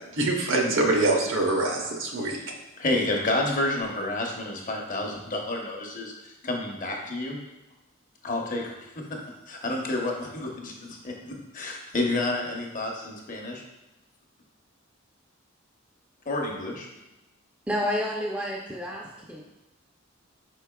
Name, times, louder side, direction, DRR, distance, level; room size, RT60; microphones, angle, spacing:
voice 1, 0.0-2.4, right 2 dB, 65° right, 1 dB, 0.8 m, -24 dB
voice 2, 2.8-7.4 8.2-9.2 9.5-13.6 16.3-16.9, left 2 dB, 40° left, 0 dB, 0.7 m, -30 dB
voice 3, 17.7-19.4, left 1 dB, 5° right, -3 dB, 0.4 m, -30 dB
5.2 x 4.6 x 2.2 m, 1.0 s
head